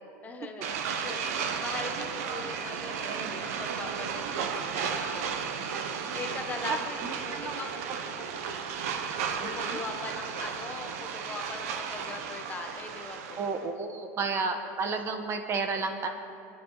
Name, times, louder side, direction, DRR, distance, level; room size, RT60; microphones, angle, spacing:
voice 1, 0.2-5.6 6.1-7.7 8.2-8.3 9.4-13.5 14.4-14.7, left 4 dB, 20° left, 4 dB, 1.5 m, -41 dB
sound 1, 0.6-13.7, right 6 dB, 75° right, 1.3 m, -34 dB
voice 2, 2.7-3.4 6.7-6.8 7.0-7.6 7.9-8.0 9.4-9.8 13.4-16.1, right 4 dB, 35° right, 6 dB, 1.4 m, -33 dB
26.0 x 10.5 x 4.1 m, 2.7 s
supercardioid pair, 130°, 8 cm